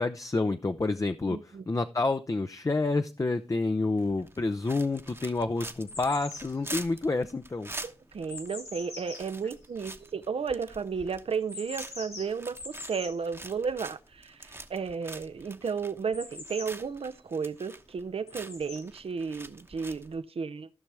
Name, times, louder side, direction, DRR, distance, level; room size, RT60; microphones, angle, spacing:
voice 1, 0.0-7.7, left 3 dB, 35° left, 0.6 m, -29 dB
voice 2, 1.3-1.6 8.1-20.7, right 5 dB, 70° right, 0.6 m, -33 dB
sound 1, 3.5-3.6 4.3-4.9 5.1-10.4 11.4-13.2 16.1-17.2 18.3-18.8 19.8-19.9, left 3 dB, 85° left, 3.5 m, -44 dB
sound 2, 4.0-20.1, right 2 dB, 25° right, 1.0 m, -45 dB
14.5 x 6.0 x 3.4 m
cardioid pair, 50°, 10 cm